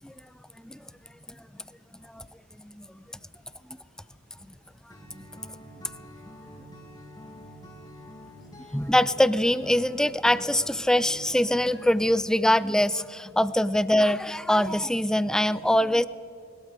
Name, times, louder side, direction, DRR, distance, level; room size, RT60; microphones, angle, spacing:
voice 1, 2.6-3.0 5.2-5.3 8.7-16.0, left 1 dB, 5° left, 16 dB, 0.3 m, -23 dB
Acoustic guitar, 4.9-12.1, equal, 20° left, 2.2 m, -47 dB
21.0 x 13.0 x 4.9 m, 2.6 s
head